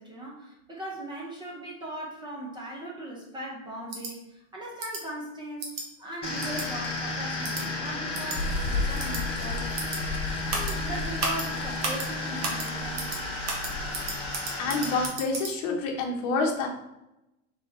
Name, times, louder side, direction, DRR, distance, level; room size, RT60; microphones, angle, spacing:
voice 1, 0.0-9.9 10.5-13.3, right 1 dB, 10° right, -2 dB, 0.7 m, -39 dB
sound 1, 3.9-4.1 4.8-5.0 5.6-5.8 6.4-6.7 7.4-7.6 8.1-8.4 9.0-9.2 9.8-10.0 10.5-10.7 11.2-11.5 11.8-12.1 12.4-12.7 13.0-13.2 13.5-15.5, right 3 dB, 35° right, 1.0 m, -33 dB
sound 2, 6.2-15.1, left 2 dB, 15° left, 1.3 m, -33 dB
sound 3, 8.4-14.3, left 3 dB, 65° left, 0.5 m, -35 dB
voice 2, 14.6-16.7, left 3 dB, 40° left, 1 dB, 1.0 m, -27 dB
3.5 x 3.3 x 4.2 m, 0.90 s
supercardioid pair, 145°, 38 cm